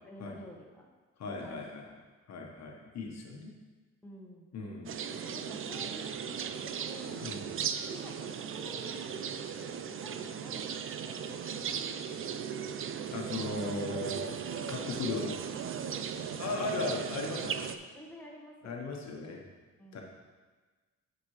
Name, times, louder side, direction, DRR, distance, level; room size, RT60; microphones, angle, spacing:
voice 1, 0.0-0.9 1.4-1.7 4.0-4.5 5.1-7.3 7.9-12.2 13.3-13.5 14.6-15.3 15.9-16.4 16.7-16.9 17.9-18.9 19.8-20.0, left 1 dB, 5° left, -2 dB, 1.5 m, -50 dB
voice 2, 1.2-1.8 2.3-3.5 4.5-5.0 7.2-7.5 13.1-15.4 16.4-17.8 18.6-19.4 19.9-20.0, left 3 dB, 60° left, 0 dB, 1.2 m, -37 dB
sound 1, 4.9-17.8, right 7 dB, 45° right, 0.5 m, -37 dB
10.5 x 5.3 x 3.2 m, 1.3 s
cardioid pair, 90°, 30 cm